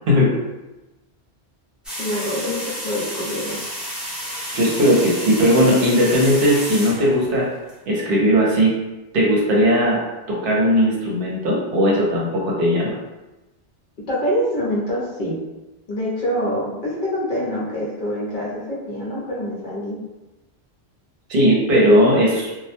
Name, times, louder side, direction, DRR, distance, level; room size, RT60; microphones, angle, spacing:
voice 1, 0.1-0.4 4.5-7.5 7.9-8.7 9.1-10.0 10.3-12.9 21.3-22.5, equal, 65° right, -3 dB, 0.8 m, -17 dB
sound 1, 1.8-7.7, equal, ahead, 0.6 m, -31 dB
voice 2, 2.0-3.6 14.1-15.4 15.9-20.0, equal, 60° left, -5 dB, 0.7 m, -25 dB
2.1 x 2.1 x 2.8 m, 1.0 s
omnidirectional pair, 1.1 m